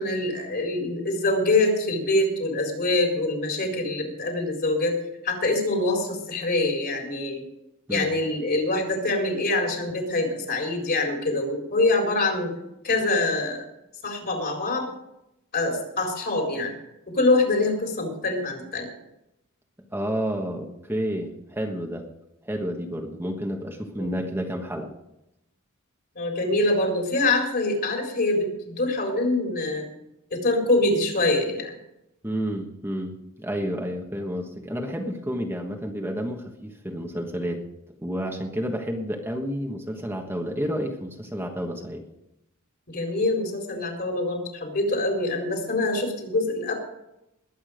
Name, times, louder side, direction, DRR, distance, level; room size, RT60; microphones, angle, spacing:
voice 1, 0.0-4.9 5.2-7.4 7.9-12.5 12.8-13.6 14.0-14.9 15.5-16.7 17.1-18.9 24.0-24.1 26.1-29.9 30.3-31.8 42.9-46.7, left 2 dB, 45° left, 2 dB, 4.2 m, -24 dB
voice 2, 19.9-22.0 22.4-24.9 32.2-37.6 38.0-42.0, equal, 10° right, 2 dB, 1.3 m, -30 dB
21.0 x 8.6 x 5.0 m, 0.86 s
head